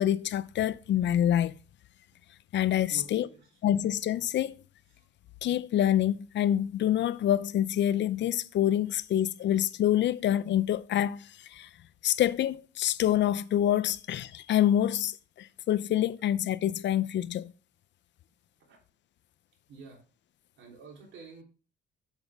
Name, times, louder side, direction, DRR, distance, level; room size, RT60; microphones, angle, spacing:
voice 1, 0.0-1.6 2.5-3.3 3.6-4.5 5.4-11.7 12.0-17.5, left 11 dB, 65° left, 0.6 m, -26 dB
voice 2, 2.9-3.4 4.9-5.1 18.7-18.8 19.7-20.0 20.6-21.4, right 4 dB, 80° right, 3.5 m, -48 dB
8.0 x 7.2 x 3.5 m
cardioid pair, 90°, 20 cm